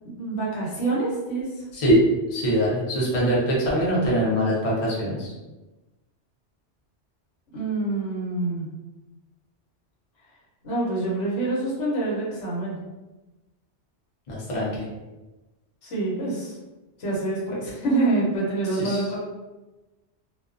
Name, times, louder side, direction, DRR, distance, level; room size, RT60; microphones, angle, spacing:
voice 1, 0.1-1.5 7.5-8.7 10.6-12.8 15.8-16.6 17.0-19.2, right 2 dB, 85° left, -5 dB, 1.1 m, -26 dB
voice 2, 1.7-2.0 2.3-5.3 14.3-14.8 18.8-19.2, equal, 40° left, -5 dB, 0.6 m, -23 dB
2.3 x 2.2 x 2.4 m, 1.1 s
omnidirectional pair, 1.2 m